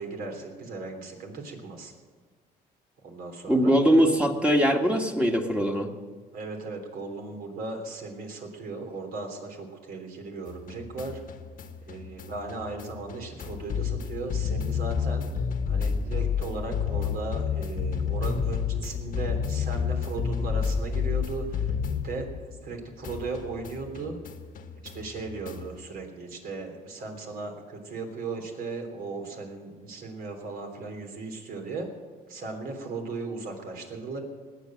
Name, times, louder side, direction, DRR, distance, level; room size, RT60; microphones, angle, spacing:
voice 1, 0.0-1.9 3.0-3.8 6.3-11.2 11.9-15.3 15.7-21.7 22.0-24.2 24.9-31.9 32.3-34.2, right 3 dB, 60° right, 4 dB, 3.5 m, -37 dB
voice 2, 3.5-5.9, equal, 5° right, 3 dB, 1.7 m, -22 dB
sound 1, 10.5-22.7 23.0-25.8, left 6 dB, 55° left, 1.3 m, -30 dB
19.5 x 8.4 x 7.6 m, 1.5 s
cardioid pair, 110°, 17 cm